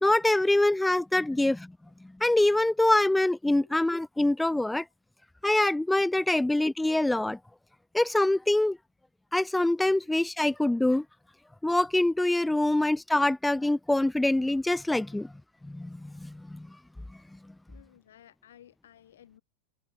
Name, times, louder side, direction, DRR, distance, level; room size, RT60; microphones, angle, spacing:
voice 1, 0.0-1.7 2.0-4.8 5.4-7.4 7.9-8.8 9.3-11.1 11.6-15.3 15.6-16.7, left 1 dB, 5° left, 0.4 m, -25 dB
voice 2, 17.7-19.4, left 11 dB, 85° left, 5.1 m, -57 dB
supercardioid pair, 120°, 0 cm